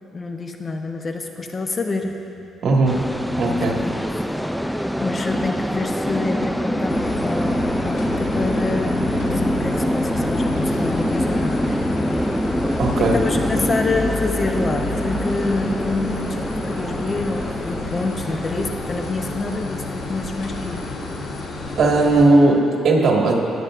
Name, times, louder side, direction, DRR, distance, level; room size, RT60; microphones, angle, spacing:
voice 1, 0.1-2.2 3.5-4.0 4.5-12.3 13.0-20.9, left 3 dB, 35° left, 4 dB, 0.7 m, -27 dB
voice 2, 2.6-3.0 3.4-3.8 12.8-13.2 21.8-23.4, right 2 dB, 60° right, -1 dB, 1.7 m, -17 dB
sound 1, 2.9-22.4, equal, ahead, 0.3 m, -25 dB
sound 2, 6.9-22.3, left 3 dB, 80° left, 1.5 m, -30 dB
20.0 x 8.8 x 2.5 m, 2.8 s
cardioid pair, 90°, 0 cm